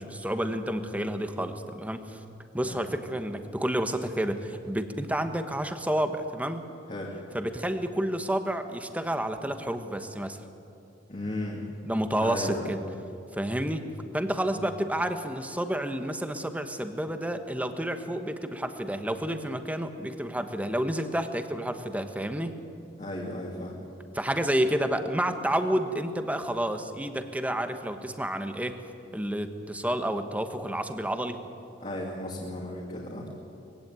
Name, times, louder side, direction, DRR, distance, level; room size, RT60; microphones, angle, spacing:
voice 1, 0.0-2.2 2.5-6.7 7.3-10.4 11.8-12.8 13.3-13.8 14.1-22.5 24.1-28.8 29.1-31.4, right 1 dB, 10° right, 8 dB, 1.2 m, -30 dB
voice 2, 11.1-11.7 12.2-12.7 14.6-14.7 23.0-23.8 31.8-33.4, left 1 dB, 35° left, -3 dB, 2.5 m, -35 dB
21.0 x 16.0 x 9.1 m, 2.6 s
head